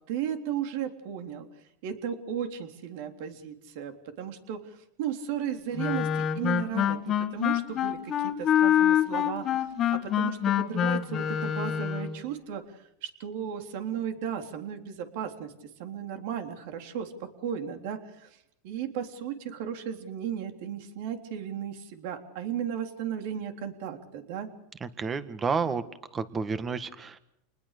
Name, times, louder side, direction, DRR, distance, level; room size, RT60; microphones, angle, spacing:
voice 1, 0.1-1.5 1.8-4.6 5.0-12.6 13.0-15.5 15.8-17.1 17.4-18.3 18.6-24.5, right 9 dB, 65° right, 6 dB, 3.5 m, -35 dB
Wind instrument woodwind instrument, 5.8-12.2, left 10 dB, 35° left, 1.8 m, -26 dB
voice 2, 24.8-25.8 26.1-27.2, right 5 dB, 20° right, 12 dB, 1.7 m, -30 dB
28.5 x 20.5 x 6.8 m, 0.79 s
supercardioid pair, 130°, 0 cm